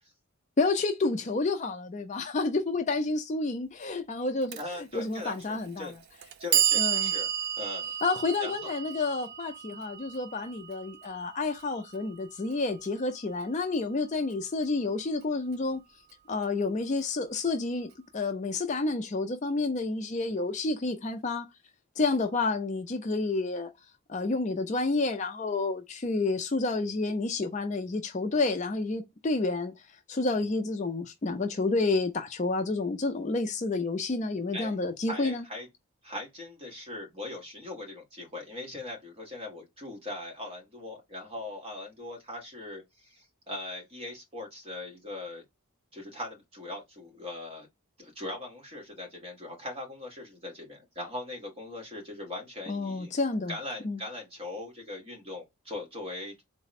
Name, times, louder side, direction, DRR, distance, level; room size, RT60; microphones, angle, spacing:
voice 1, 0.6-4.6 4.9-5.9 6.8-7.1 8.0-15.8 16.3-21.5 22.0-23.7 24.1-29.8 30.1-35.4 52.7-53.5 53.8-54.0, left 3 dB, 35° left, 0.4 m, -29 dB
voice 2, 4.5-5.9 6.4-7.3 7.6-7.9 8.4-8.7 34.5-34.8 35.1-35.7 36.0-45.4 45.9-47.7 48.0-53.1 53.5-56.4, left 2 dB, 25° right, 1.4 m, -40 dB
Clock, 4.5-4.6 5.6-5.7 6.2-12.3, right 10 dB, 45° right, 0.4 m, -31 dB
3.9 x 2.1 x 4.1 m
head